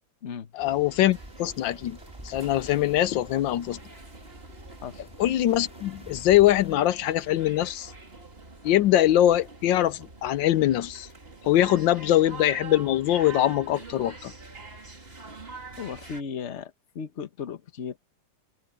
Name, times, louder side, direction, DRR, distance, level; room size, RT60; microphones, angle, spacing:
voice 1, 0.5-2.0 2.2-3.8 5.2-7.9 8.6-11.1 11.4-14.3, left 13 dB, 85° left, 1.4 m, -22 dB
sound 1, 0.6-16.2, right 3 dB, 30° right, 2.7 m, -45 dB
sound 2, 1.1-6.7, equal, 5° right, 4.5 m, -49 dB
voice 2, 15.8-18.0, left 6 dB, 45° left, 1.2 m, -36 dB
omnidirectional pair, 2.0 m